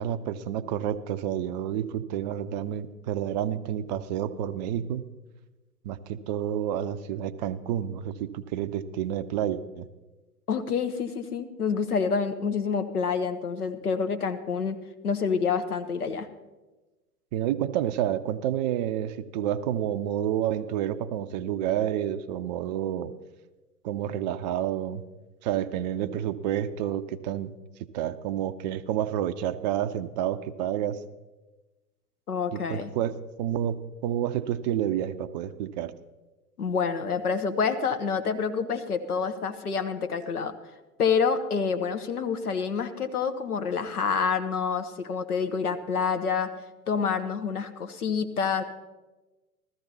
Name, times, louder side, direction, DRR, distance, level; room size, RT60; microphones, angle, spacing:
voice 1, 0.0-5.1 5.8-9.9 17.3-23.1 23.8-25.0 25.4-27.5 27.9-31.0 32.5-35.9, right 10 dB, 30° right, 12 dB, 0.5 m, -29 dB
voice 2, 10.5-14.8 15.0-16.3 32.3-32.9 36.6-40.5 41.0-46.5 46.9-48.6, left 5 dB, 75° left, 8 dB, 1.2 m, -27 dB
15.0 x 13.5 x 4.1 m, 1.1 s
figure-of-eight pair, 100°, 45 cm